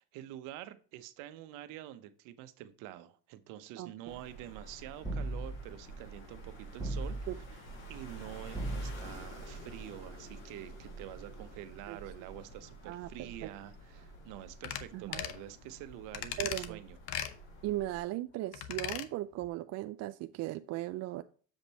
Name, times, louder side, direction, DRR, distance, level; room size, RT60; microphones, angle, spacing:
voice 1, 0.0-7.6 7.9-17.0, right 13 dB, 70° right, 12 dB, 0.9 m, -47 dB
sound 1, 4.1-18.0, right 1 dB, 65° left, 4.0 m, -49 dB
sound 2, 5.0-5.8 6.8-7.5 8.5-9.3, right 2 dB, 15° right, 1.3 m, -37 dB
voice 2, 12.8-13.5 14.9-15.2 16.4-16.8 17.6-21.2, right 15 dB, 50° right, 10 dB, 0.4 m, -37 dB
sound 3, 14.6-14.8 15.1-15.4 16.1-16.7 17.1-17.3 18.5-19.1 19.4-19.5, left 11 dB, 90° left, 0.9 m, -37 dB
7.2 x 5.2 x 4.1 m, 0.41 s
cardioid pair, 125°, 32 cm